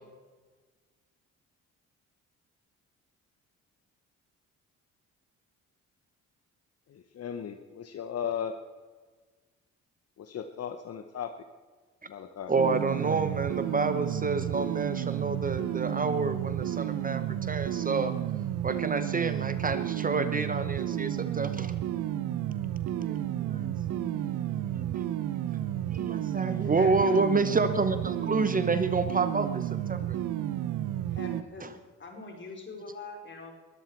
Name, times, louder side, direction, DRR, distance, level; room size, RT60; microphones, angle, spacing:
voice 1, 6.9-8.6 10.2-11.4 12.1-12.5, left 8 dB, 55° left, 8 dB, 0.9 m, -36 dB
voice 2, 12.5-18.1 18.5-21.7 22.9-24.4 24.7-25.1 25.9-30.2 31.6-31.7, right 4 dB, 30° right, 10 dB, 1.0 m, -29 dB
sound 1, 12.6-31.4, right 12 dB, 85° right, 0.9 m, -32 dB
voice 3, 26.6-27.3 31.1-31.7 32.0-33.5, left 3 dB, 40° left, 3 dB, 3.8 m, -43 dB
21.0 x 13.0 x 4.6 m, 1.4 s
cardioid pair, 90°, 30 cm